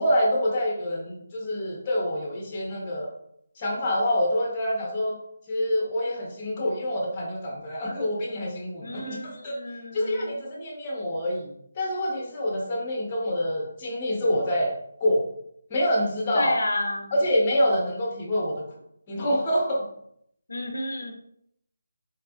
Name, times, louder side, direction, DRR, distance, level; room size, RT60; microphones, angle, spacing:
voice 1, 0.0-3.1 3.6-5.2 5.5-9.2 9.4-9.5 9.9-14.7 15.0-15.3 15.7-16.6 17.1-18.6 19.1-19.8, equal, 20° left, -2 dB, 0.7 m, -26 dB
voice 2, 8.8-10.4 16.3-17.2 20.5-21.1, left 1 dB, 85° left, 4 dB, 0.5 m, -31 dB
3.5 x 2.4 x 2.2 m, 0.72 s
figure-of-eight pair, 170°, 0 cm